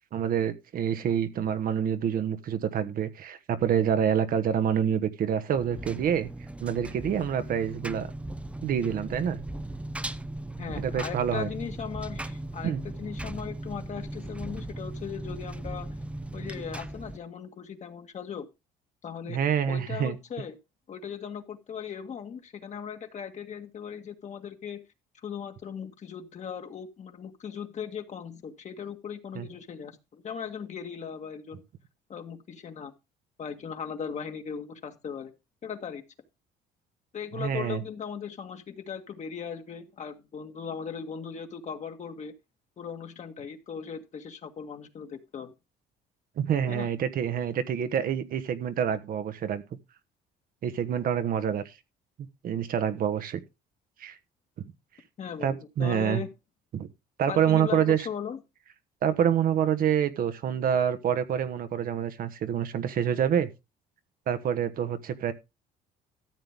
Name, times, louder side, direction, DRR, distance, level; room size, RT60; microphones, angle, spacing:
voice 1, 0.1-6.3 6.6-8.1 8.6-9.4 10.8-11.5 12.6-12.8 19.3-20.2 29.3-29.5 37.3-37.8 46.4-49.6 50.6-51.7 52.4-53.4 54.0-54.2 54.6-54.7 55.4-56.2 56.7-56.9 57.2-58.1 59.0-63.5 64.3-65.3, right 8 dB, 60° right, 1.2 m, -27 dB
Engine, 5.6-17.2, right 1 dB, 5° right, 0.7 m, -38 dB
voice 2, 10.6-15.9 16.3-18.5 19.0-20.6 20.9-24.8 25.2-31.6 32.1-32.9 33.4-35.3 35.6-36.0 37.1-42.3 42.8-45.5 46.7-46.9 55.2-56.3 57.3-58.4, left 7 dB, 45° left, 1.8 m, -38 dB
13.5 x 7.8 x 3.6 m
cardioid pair, 110°, 17 cm